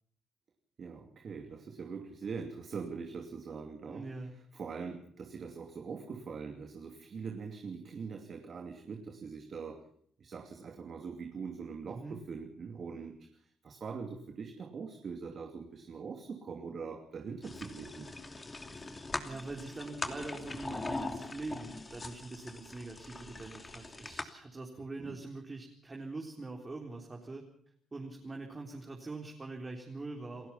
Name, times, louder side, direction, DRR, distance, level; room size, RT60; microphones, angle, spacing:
voice 1, 0.8-9.9 10.2-18.1 25.0-25.2, right 5 dB, 50° right, 4 dB, 2.8 m, -43 dB
voice 2, 3.8-4.4 11.9-12.2 18.7-27.4 27.9-30.5, right 3 dB, 25° right, 1 dB, 3.9 m, -43 dB
sound 1, 17.4-24.2, left 3 dB, 25° left, 2.8 m, -41 dB
29.0 x 16.0 x 5.8 m, 0.62 s
cardioid pair, 90°, 0 cm